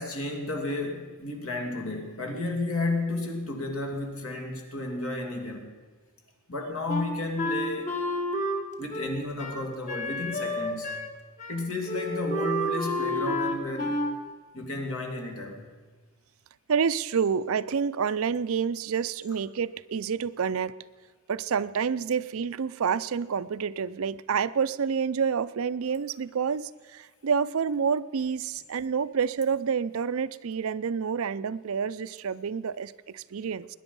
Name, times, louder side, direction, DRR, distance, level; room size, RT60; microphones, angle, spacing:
voice 1, 0.0-5.7 6.5-8.0 8.8-10.9 11.5-14.0 14.5-15.7, left 2 dB, 70° left, 2 dB, 2.6 m, -32 dB
Wind instrument woodwind instrument, 6.9-11.1 11.4-11.6 11.9-14.2, left 1 dB, 35° left, 1.6 m, -30 dB
voice 2, 16.7-20.7 21.3-33.7, right 6 dB, 70° right, 15 dB, 0.5 m, -28 dB
21.0 x 10.0 x 5.4 m, 1.4 s
head